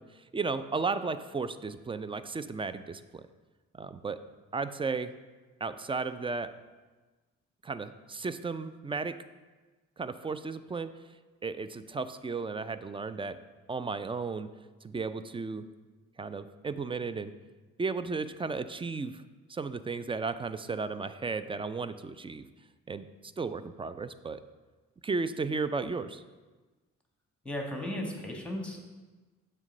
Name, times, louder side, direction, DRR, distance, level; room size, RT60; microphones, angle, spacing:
voice 1, 0.0-3.2 3.7-4.2 4.5-5.1 5.6-6.5 7.6-9.2 10.0-11.0 11.4-13.4 13.7-14.5 14.8-15.7 16.2-17.3 17.8-19.2 19.5-22.5 22.9-24.4 25.0-26.2, right 4 dB, 15° right, 12 dB, 0.3 m, -34 dB
voice 2, 27.4-28.8, left 1 dB, 5° left, 0 dB, 1.5 m, -35 dB
7.3 x 3.3 x 5.3 m, 1.3 s
hypercardioid pair, 50°, 33 cm